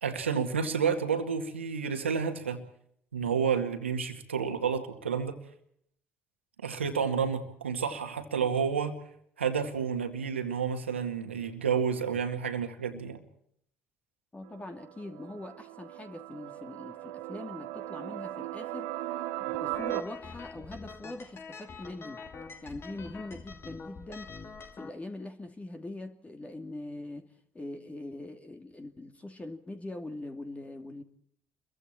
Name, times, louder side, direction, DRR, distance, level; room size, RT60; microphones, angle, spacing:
voice 1, 0.0-2.6 3.1-5.4 6.6-9.0 9.4-13.2, right 6 dB, 90° right, 7 dB, 2.0 m, -30 dB
voice 2, 14.3-18.9 19.4-22.2 22.6-24.3 24.8-27.3 27.5-31.0, left 2 dB, 20° left, 5 dB, 2.8 m, -42 dB
sound 1, 14.5-20.0, right 16 dB, 70° right, 1.2 m, -38 dB
sound 2, 19.7-24.9, left 4 dB, 40° left, 2.8 m, -45 dB
29.5 x 23.0 x 4.5 m, 0.69 s
hypercardioid pair, 55°, 6 cm